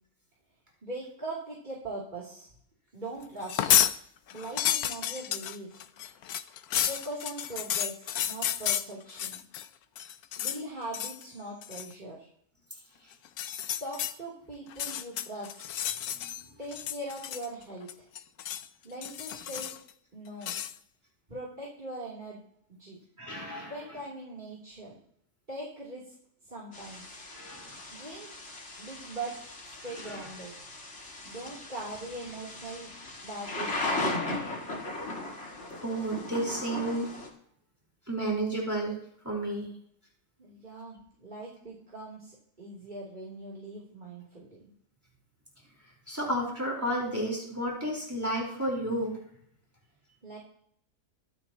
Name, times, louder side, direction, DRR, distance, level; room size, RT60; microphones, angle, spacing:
voice 1, 0.8-2.5 2.9-3.7 4.3-5.7 6.7-9.4 10.4-12.3 13.8-15.8 16.6-18.1 18.8-19.8 20.1-20.5 21.3-22.4 22.8-23.0 23.7-25.0 25.5-26.1 26.5-27.2 27.9-28.3 28.8-29.4 29.6-30.5 31.2-32.9 33.2-34.3 40.4-44.6 50.2-50.4, right 2 dB, 30° right, -4 dB, 3.5 m, -41 dB
sound 1, 3.4-4.0 4.3-9.7 10.0-10.6 10.9-11.2 11.6-11.9 13.3-14.1 14.7-16.4 16.7-17.6 17.9-18.7 19.0-19.9 20.4-20.7, left 11 dB, 90° left, 1.2 m, -31 dB
voice 2, 23.2-24.0 27.3-27.7 29.9-30.3 35.8-37.1 38.1-39.0 39.2-39.7 46.1-49.1, right 1 dB, 10° right, -3 dB, 4.5 m, -32 dB
Thunder / Rain, 26.7-37.3, left 2 dB, 50° left, 2.6 m, -37 dB
23.5 x 9.6 x 3.0 m, 0.67 s
omnidirectional pair, 1.5 m